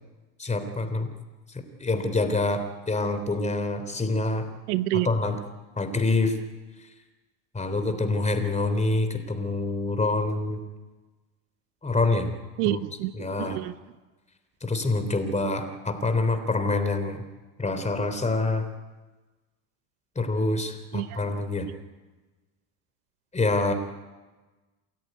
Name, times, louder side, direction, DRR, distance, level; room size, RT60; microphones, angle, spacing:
voice 1, 0.4-1.1 1.8-4.5 4.9-5.4 5.8-6.4 7.5-10.6 11.8-12.3 12.6-12.8 13.1-13.6 14.6-17.2 17.6-18.6 20.1-21.7 23.3-23.7, left 2 dB, 15° left, 8 dB, 3.4 m, -26 dB
voice 2, 4.7-5.1 12.6-13.1 13.4-13.7 20.9-21.1, right 17 dB, 85° right, 15 dB, 1.0 m, -27 dB
27.5 x 14.0 x 9.4 m, 1.2 s
supercardioid pair, 105°, 44 cm